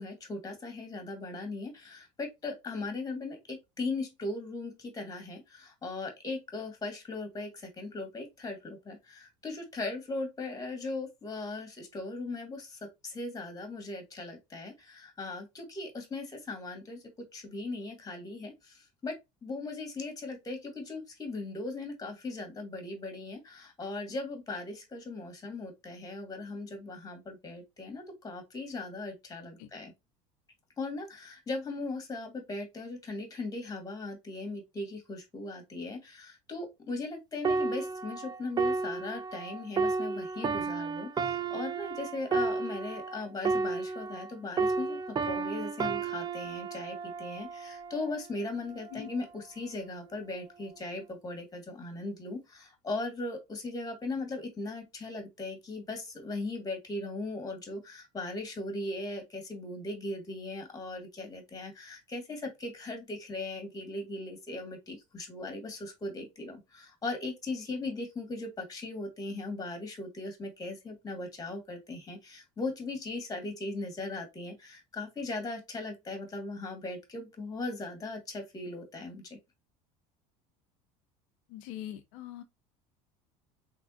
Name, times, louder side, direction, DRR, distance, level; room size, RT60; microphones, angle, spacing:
voice 1, 0.0-17.0 17.3-19.2 19.4-29.9 30.8-45.0 45.2-79.2, left 2 dB, 20° left, 2.1 m, -38 dB
sound 1, 37.4-44.3 44.6-48.2 48.8-49.0, right 4 dB, 25° right, 0.5 m, -32 dB
voice 2, 81.5-82.4, left 11 dB, 75° left, 0.6 m, -42 dB
3.7 x 3.4 x 2.4 m
supercardioid pair, 90°, 17 cm